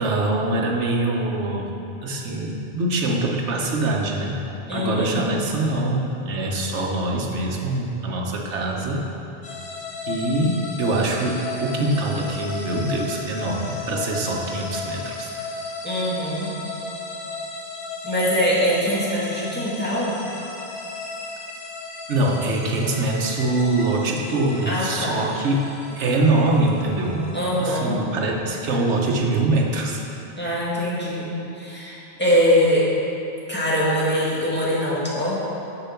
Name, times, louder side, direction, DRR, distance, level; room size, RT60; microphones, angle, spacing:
voice 1, 0.0-1.7 2.0-4.4 4.7-9.1 10.1-15.3 22.1-25.6 26.0-27.3 27.6-30.0, right 2 dB, 85° right, 0 dB, 1.3 m, -23 dB
voice 2, 4.7-5.2 15.8-16.5 18.0-20.2 24.7-25.2 27.3-28.0 30.4-31.3 31.5-32.9 33.5-35.4, equal, 10° left, -8 dB, 1.8 m, -22 dB
sound 1, 9.4-27.6, left 3 dB, 80° left, 1.3 m, -35 dB
6.9 x 6.7 x 5.8 m, 2.9 s
omnidirectional pair, 1.2 m